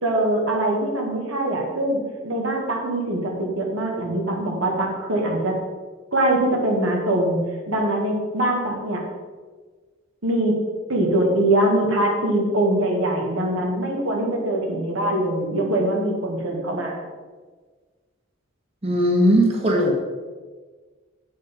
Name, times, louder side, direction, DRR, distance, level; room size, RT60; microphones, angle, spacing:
voice 1, 0.0-5.6 6.1-7.4 7.7-9.0 10.2-10.6 10.9-17.0, right 1 dB, 85° right, -1 dB, 1.8 m, -23 dB
voice 2, 18.8-20.0, equal, 30° right, -1 dB, 1.2 m, -18 dB
8.0 x 5.3 x 5.3 m, 1.4 s
head